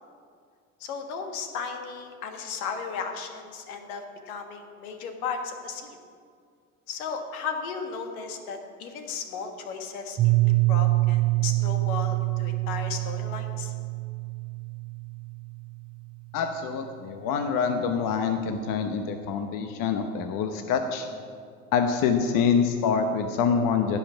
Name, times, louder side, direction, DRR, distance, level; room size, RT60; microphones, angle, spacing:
voice 1, 0.8-6.0 6.9-13.7, left 5 dB, 70° left, 5 dB, 1.6 m, -35 dB
Piano, 10.2-15.8, right 21 dB, 20° right, 0.3 m, -25 dB
voice 2, 16.3-21.1 21.7-24.0, left 6 dB, 45° left, 6 dB, 1.0 m, -26 dB
16.5 x 5.8 x 5.7 m, 2.2 s
hypercardioid pair, 85°, 44 cm